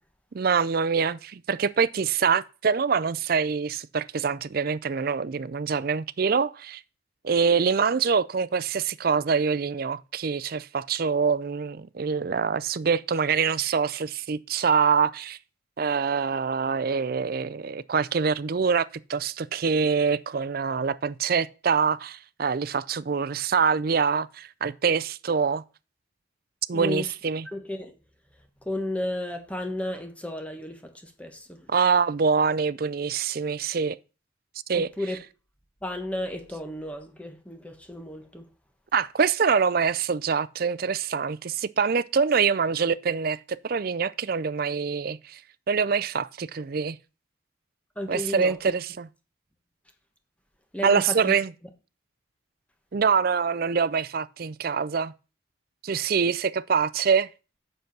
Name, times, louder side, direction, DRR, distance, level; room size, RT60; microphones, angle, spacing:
voice 1, 0.3-6.8 7.2-15.4 15.8-25.6 26.7-27.5 31.7-34.0 34.7-34.9 38.9-45.4 45.7-47.0 48.1-49.1 50.8-51.5 52.9-55.1 55.8-57.3, right 5 dB, 50° right, 0.4 m, -25 dB
voice 2, 26.7-27.1 27.4-27.9 28.6-31.7 34.7-35.2 35.8-38.5 47.9-48.6 50.7-51.3, left 1 dB, 5° left, 1.2 m, -33 dB
7.9 x 6.8 x 6.0 m
head